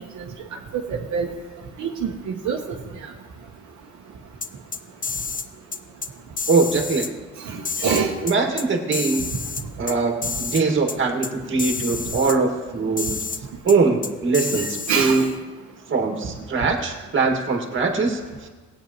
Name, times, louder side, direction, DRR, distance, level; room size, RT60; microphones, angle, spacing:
voice 1, 0.7-1.3 1.8-2.1 2.4-2.8 7.5-8.1 14.5-15.3, right 6 dB, 70° right, -1 dB, 1.1 m, -25 dB
sound 1, 4.4-5.5 5.7-6.1 6.4-7.1 7.6-8.6 8.9-9.9 10.2-10.6 10.9-11.0 11.2-11.3 11.6-12.4 13.0-13.4 13.7-13.8 14.0-15.3, left 5 dB, 25° left, 0.7 m, -29 dB
voice 2, 6.5-7.1 8.2-9.3 9.8-13.2 13.6-14.7 14.9-15.3 15.9-18.5, right 4 dB, 40° right, 3 dB, 1.8 m, -22 dB
17.5 x 8.9 x 2.9 m, 1.3 s
cardioid pair, 90°, 30 cm